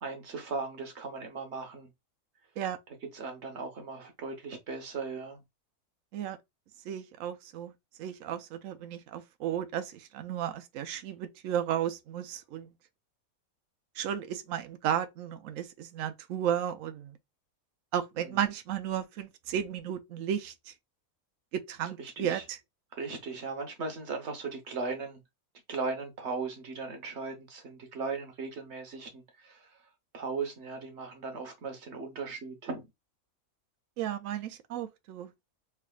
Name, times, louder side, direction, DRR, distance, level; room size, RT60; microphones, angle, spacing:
voice 1, 0.0-1.9 3.1-5.4 22.2-22.4 23.0-25.2 25.7-29.7 30.1-32.9, right 4 dB, 55° right, 1.1 m, -37 dB
voice 2, 6.8-7.7 8.0-12.7 13.9-17.2 17.9-20.7 21.5-22.6 34.0-35.3, right 10 dB, 70° right, 0.9 m, -34 dB
3.4 x 3.3 x 2.3 m
omnidirectional pair, 1.5 m